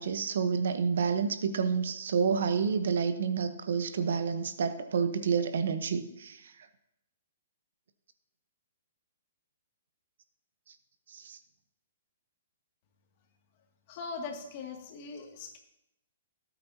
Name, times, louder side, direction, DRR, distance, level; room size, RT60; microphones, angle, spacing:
voice 1, 0.0-6.4 11.1-11.4, right 6 dB, 70° right, 10 dB, 1.1 m, -29 dB
voice 2, 13.9-15.6, left 4 dB, 40° left, 1 dB, 2.4 m, -40 dB
18.0 x 8.6 x 2.9 m, 0.84 s
hypercardioid pair, 145°, 0 cm